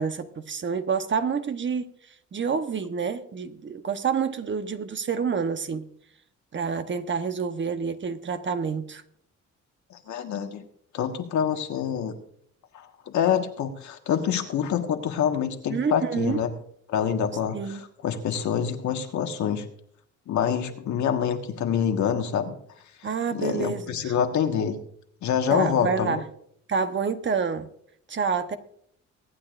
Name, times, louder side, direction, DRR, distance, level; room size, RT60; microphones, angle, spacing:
voice 1, 0.0-1.9 2.3-5.8 6.5-9.0 15.7-16.4 17.5-17.8 23.0-24.1 25.5-26.2 26.7-27.7 28.1-28.6, right 6 dB, 40° right, 9 dB, 1.0 m, -28 dB
voice 2, 9.9-10.7 10.9-12.1 12.7-16.5 16.9-19.6 20.3-22.5 23.3-24.8 25.2-26.2, left 8 dB, 70° left, 5 dB, 1.5 m, -26 dB
23.5 x 8.7 x 2.5 m, 0.67 s
cardioid pair, 90°, 30 cm